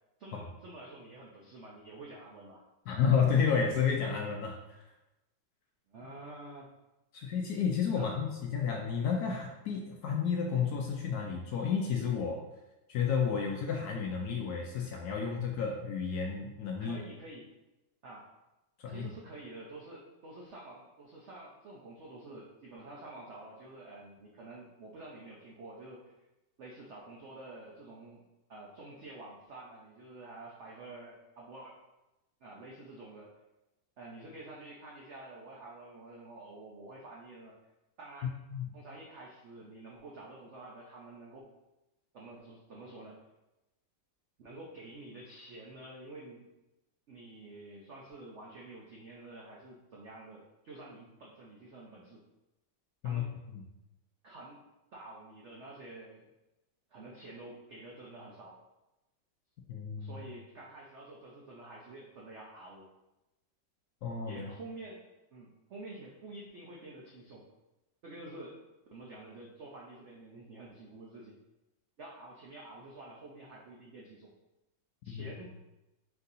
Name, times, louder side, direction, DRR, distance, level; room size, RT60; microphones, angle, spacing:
voice 1, 0.2-2.6 5.9-6.7 7.9-8.1 16.8-17.5 18.0-18.3 18.9-26.1 26.6-28.2 28.5-31.8 32.4-33.3 34.0-37.5 38.0-38.3 38.7-41.5 42.1-43.2 44.4-46.5 47.1-52.2 53.0-53.3 54.2-54.6 54.9-56.3 56.9-58.6 60.0-62.9 64.2-65.0 65.3-67.5 68.0-68.6 68.9-71.4 72.0-74.3 75.0-75.5, right 2 dB, 80° right, -3 dB, 0.6 m, -49 dB
voice 2, 2.9-4.6 7.1-12.4 12.9-17.0 18.8-19.1 38.5-38.6 53.0-53.2 53.5-53.6 59.7-60.1 64.0-64.5 75.1-75.3, left 6 dB, 70° left, 0 dB, 0.9 m, -31 dB
4.5 x 2.7 x 4.0 m, 0.99 s
omnidirectional pair, 2.0 m